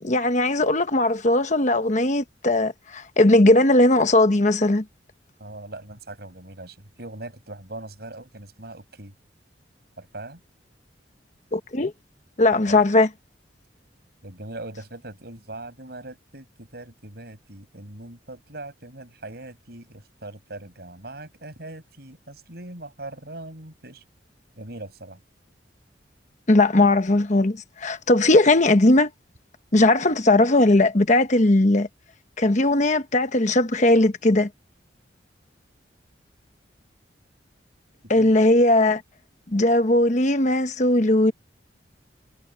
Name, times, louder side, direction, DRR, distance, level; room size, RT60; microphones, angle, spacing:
voice 1, 0.0-4.8 11.5-11.9 12.4-13.1 26.5-29.1 29.7-31.9 32.4-34.5 38.1-39.0 39.5-41.3, left 2 dB, 40° left, 1.1 m, -18 dB
voice 2, 5.4-9.1 10.0-10.4 12.7-12.9 14.2-24.0 24.6-25.2 38.2-38.4, right 2 dB, 60° right, 7.2 m, -40 dB
head